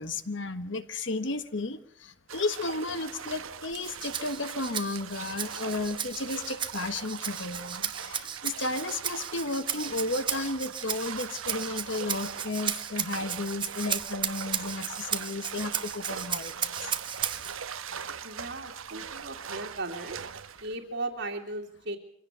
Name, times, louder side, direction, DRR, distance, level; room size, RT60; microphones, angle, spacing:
voice 1, 0.0-16.9, left 2 dB, 60° left, 11 dB, 1.3 m, -33 dB
sound 1, 2.3-20.7, right 7 dB, 75° right, 1.0 m, -41 dB
Rattle (instrument), 3.7-17.5, right 8 dB, 20° right, 0.9 m, -35 dB
voice 2, 18.2-20.2 20.6-22.0, right 2 dB, 60° right, -4 dB, 2.5 m, -37 dB
24.5 x 16.5 x 8.0 m, 0.69 s
head